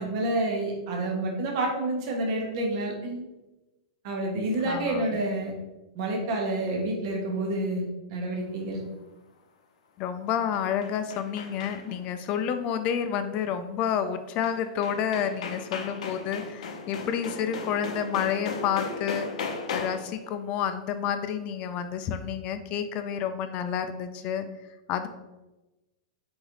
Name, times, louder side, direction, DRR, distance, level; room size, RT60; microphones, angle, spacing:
voice 1, 0.0-3.3 4.0-5.5 5.9-8.8, right 2 dB, 55° right, 0 dB, 1.0 m, -29 dB
voice 2, 4.6-5.0 10.0-19.3 19.7-24.5 24.9-25.1, left 8 dB, 35° left, 9 dB, 0.4 m, -29 dB
sound 1, 10.3-12.1 14.4-14.5 14.8-20.2, left 4 dB, 80° left, 0.6 m, -36 dB
4.0 x 3.9 x 3.0 m, 1.1 s
hypercardioid pair, 140°, 3 cm